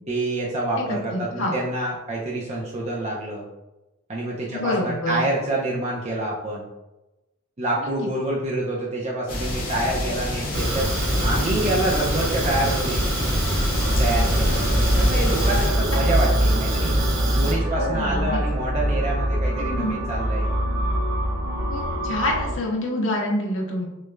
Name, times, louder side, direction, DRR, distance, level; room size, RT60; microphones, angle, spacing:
voice 1, 0.1-3.5 4.1-6.6 7.6-10.9 11.2-13.1 14.0-14.7 15.0-16.9 17.4-20.5, right 1 dB, 35° right, -4 dB, 0.6 m, -27 dB
voice 2, 0.9-1.5 4.5-5.2 7.8-7.9 15.9-16.0 17.8-18.4 19.6-20.0 21.7-23.8, left 1 dB, 70° left, -2 dB, 0.9 m, -27 dB
sound 1, 9.3-15.7, left 1 dB, 45° left, 1.3 m, -26 dB
Fire, 10.5-17.5, right 1 dB, 60° right, 0.8 m, -26 dB
sound 2, 13.8-22.6, equal, 90° right, 1.0 m, -24 dB
6.2 x 2.5 x 2.2 m, 0.99 s
head